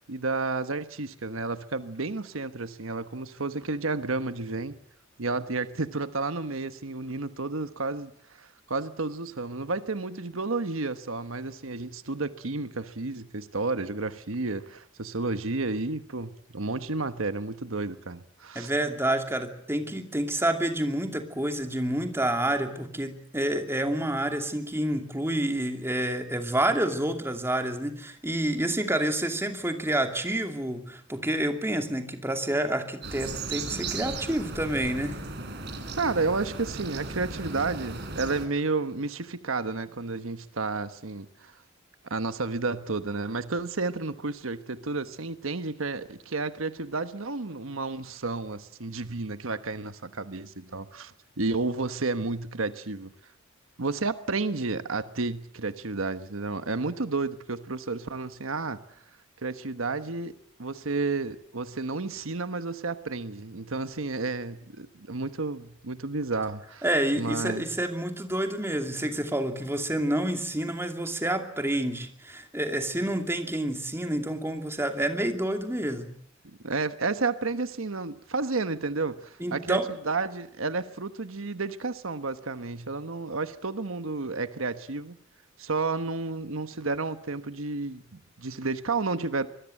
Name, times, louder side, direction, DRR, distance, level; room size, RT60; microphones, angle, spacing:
voice 1, 0.1-4.8 5.2-8.1 8.4-18.7 36.0-41.5 42.0-53.1 53.8-58.8 59.4-60.3 60.6-66.8 67.2-67.7 76.6-79.8 80.0-85.2 85.6-89.5, right 3 dB, 85° right, 1.3 m, -31 dB
voice 2, 18.5-35.2 66.8-76.1 79.4-79.9, right 1 dB, 10° right, 2.6 m, -28 dB
sound 1, 33.0-38.5, right 3 dB, 55° right, 3.9 m, -36 dB
25.0 x 21.0 x 7.8 m
head